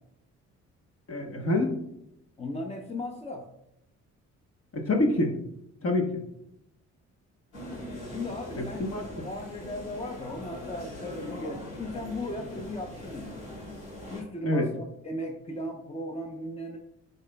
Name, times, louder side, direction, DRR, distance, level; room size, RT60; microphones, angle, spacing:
voice 1, 1.1-1.7 4.7-5.4 5.8-6.2 8.6-9.0 14.4-14.7, left 2 dB, 50° left, 3 dB, 1.2 m, -26 dB
voice 2, 2.4-3.5 8.1-8.9 9.2-13.4 14.1-16.8, left 1 dB, 20° left, 3 dB, 0.7 m, -37 dB
sound 1, 7.5-14.2, left 1 dB, 85° left, 2.6 m, -41 dB
11.0 x 4.1 x 2.2 m, 0.79 s
cardioid pair, 90°, 30 cm